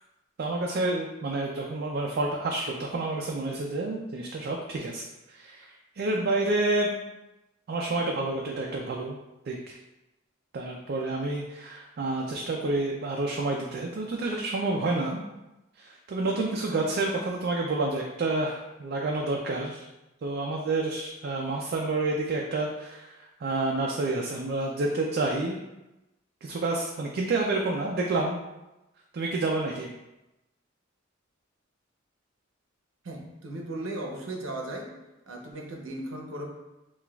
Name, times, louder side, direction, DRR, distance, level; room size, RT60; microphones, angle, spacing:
voice 1, 0.4-6.9 7.7-9.2 9.5-9.7 10.5-15.2 15.8-19.9 20.2-25.6 26.4-28.4 29.1-29.9, right 2 dB, 50° right, 0 dB, 0.3 m, -29 dB
voice 2, 33.0-34.9 35.3-36.5, right 1 dB, 75° right, 1 dB, 0.7 m, -36 dB
5.7 x 2.3 x 2.3 m, 0.99 s
head